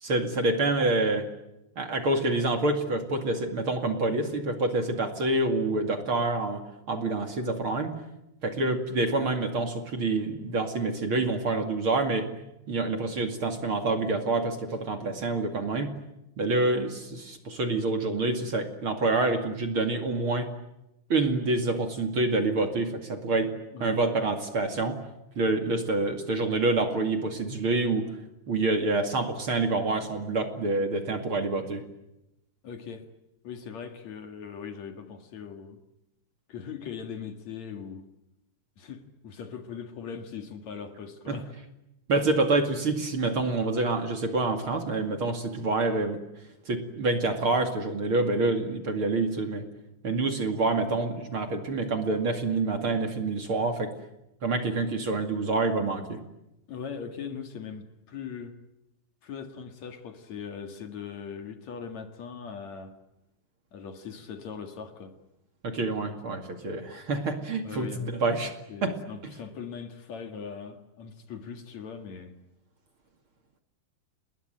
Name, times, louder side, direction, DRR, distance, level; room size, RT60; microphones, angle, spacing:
voice 1, 0.0-1.3 1.8-6.6 6.9-7.9 8.4-12.3 12.7-15.9 16.4-20.5 21.1-23.5 23.8-25.0 25.4-28.1 28.5-31.8 41.3-41.4 42.1-46.2 46.7-49.6 50.0-53.9 54.4-56.2 65.6-68.5 68.8-68.9, right 2 dB, 40° right, 2.3 m, -27 dB
voice 2, 32.6-33.1 33.4-35.8 36.5-38.1 38.8-41.5 56.7-58.6 59.2-63.0 63.7-65.2 67.6-68.1 68.7-72.4, left 6 dB, 50° left, 2.4 m, -40 dB
30.0 x 20.5 x 9.1 m
omnidirectional pair, 5.2 m